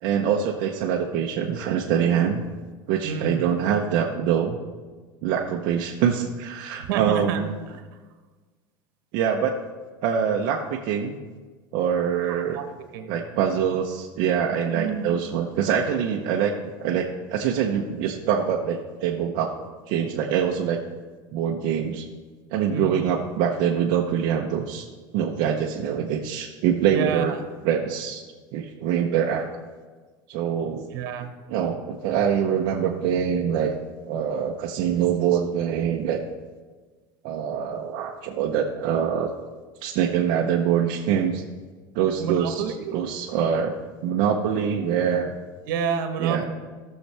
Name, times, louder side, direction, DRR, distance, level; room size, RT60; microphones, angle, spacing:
voice 1, 0.0-2.4 2.9-4.6 5.2-7.4 9.1-9.6 10.0-11.2 11.7-12.6 13.1-16.5 16.8-19.6 19.9-20.8 21.3-22.0 22.5-24.9 25.1-27.3 27.6-28.2 28.5-29.4 30.3-30.9 31.5-33.7 34.1-36.2 37.2-39.3 39.8-41.4 41.9-42.5 42.9-43.7 44.0-45.3 46.2-46.5, right 8 dB, 50° right, -1 dB, 0.7 m, -24 dB
voice 2, 3.0-3.5 6.8-7.4 7.7-7.8 12.5-12.6 12.9-13.1 14.7-15.1 22.7-22.9 26.9-27.4 30.9-31.3 42.2-43.0 45.7-46.5, right 6 dB, 75° right, 7 dB, 1.1 m, -29 dB
15.0 x 6.6 x 3.3 m, 1.4 s
cardioid pair, 170°, 11 cm